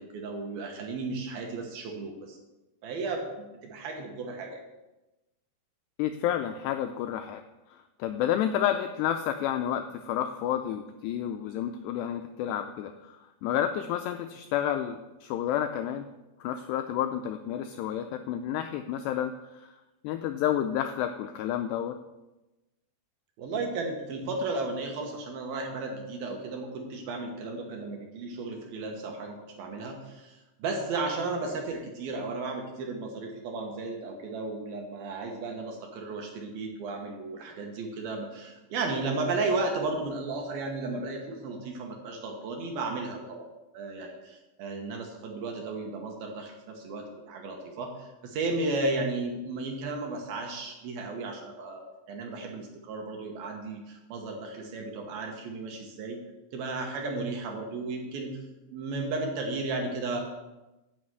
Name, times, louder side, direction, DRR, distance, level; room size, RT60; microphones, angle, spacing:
voice 1, 0.0-2.4 2.8-4.6 23.4-43.5 43.7-56.2 56.5-58.4 58.7-60.2, right 3 dB, 70° right, 2 dB, 2.5 m, -34 dB
voice 2, 6.0-7.4 7.7-13.2 13.4-16.0 16.4-19.3 20.0-21.9, left 10 dB, 85° left, 7 dB, 2.4 m, -30 dB
9.5 x 6.0 x 8.0 m, 1.0 s
omnidirectional pair, 5.4 m